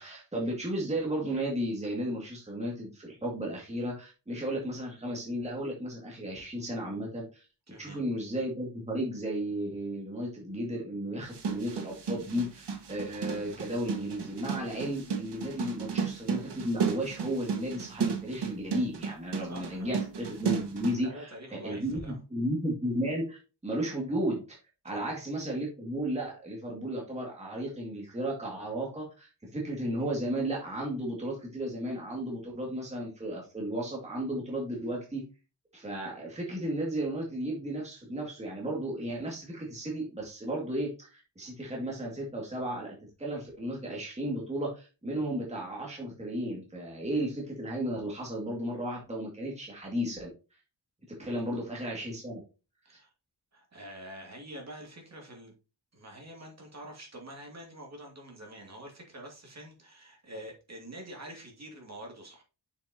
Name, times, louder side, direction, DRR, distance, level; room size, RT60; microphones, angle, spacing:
voice 1, 0.0-7.5 7.8-24.6 24.8-35.2 35.7-50.3 51.1-52.4 52.9-53.0, right 1 dB, 15° right, -2 dB, 2.0 m, -34 dB
voice 2, 7.7-8.0 19.4-20.0 21.0-22.2 24.9-25.0 51.4-51.5 52.8-53.1 53.5-55.5 55.9-62.4, right 1 dB, 35° right, 0 dB, 2.4 m, -46 dB
sound 1, 11.2-21.0, right 6 dB, 65° right, 1.6 m, -33 dB
6.9 x 6.2 x 2.8 m, 0.31 s
wide cardioid pair, 155°, 45 cm